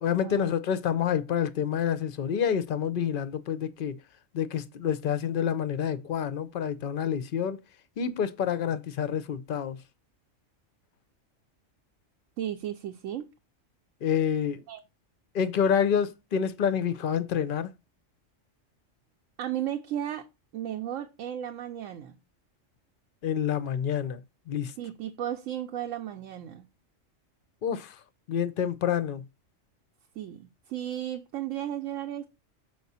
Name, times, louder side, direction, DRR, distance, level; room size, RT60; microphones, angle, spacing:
voice 1, 0.0-4.0 4.3-7.6 8.0-9.8 14.0-14.6 15.3-17.7 23.2-24.2 24.5-24.7 27.6-28.0 28.3-29.3, left 8 dB, 55° left, 0.6 m, -28 dB
voice 2, 12.4-13.3 14.7-14.8 19.4-20.2 20.5-22.2 24.8-26.7 30.2-32.3, right 11 dB, 80° right, 1.0 m, -34 dB
6.6 x 4.7 x 4.1 m
omnidirectional pair, 1.4 m